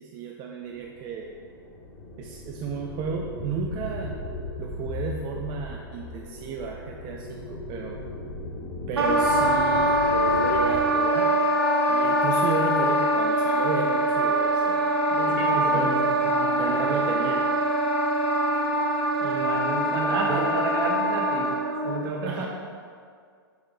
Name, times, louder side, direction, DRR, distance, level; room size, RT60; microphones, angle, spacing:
voice 1, 0.0-1.3 2.2-4.2 4.6-8.0 8.9-11.3 11.9-14.8 15.1-16.0 16.6-17.5 20.3-20.5 22.3-22.5, right 5 dB, 35° right, 1 dB, 0.5 m, -33 dB
sound 1, 0.6-10.9, left 2 dB, 30° left, 1.6 m, -37 dB
Wind instrument woodwind instrument, 9.0-21.9, equal, 85° right, 1.0 m, -23 dB
voice 2, 15.4-16.7 19.2-21.5 21.8-22.5, right 3 dB, 60° right, -1 dB, 1.5 m, -30 dB
7.0 x 4.8 x 3.8 m, 2.1 s
hypercardioid pair, 110°, 13 cm